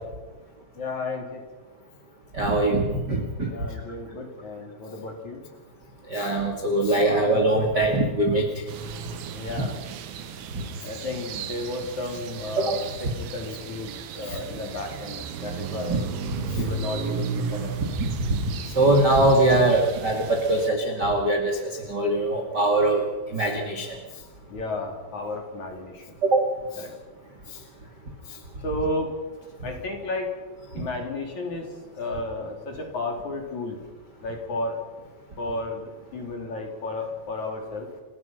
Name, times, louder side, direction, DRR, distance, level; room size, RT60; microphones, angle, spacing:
voice 1, 0.8-1.4 3.4-5.4 9.3-9.8 10.8-16.0 16.6-17.7 24.5-26.2 26.8-26.9 28.6-29.1 29.6-30.3 30.7-31.7 31.9-33.8 34.2-34.8 35.4-37.9, left 2 dB, 40° left, 2 dB, 4.4 m, -33 dB
voice 2, 2.3-3.5 6.1-8.6 10.5-10.6 12.6-12.7 15.9-16.0 16.3-16.7 18.0-23.0 23.3-24.0 26.2-26.4, right 2 dB, 35° right, 2 dB, 1.7 m, -22 dB
sound 1, 8.7-20.7, right 6 dB, 85° right, 4.1 m, -35 dB
29.5 x 16.0 x 5.9 m, 1.2 s
omnidirectional pair, 5.5 m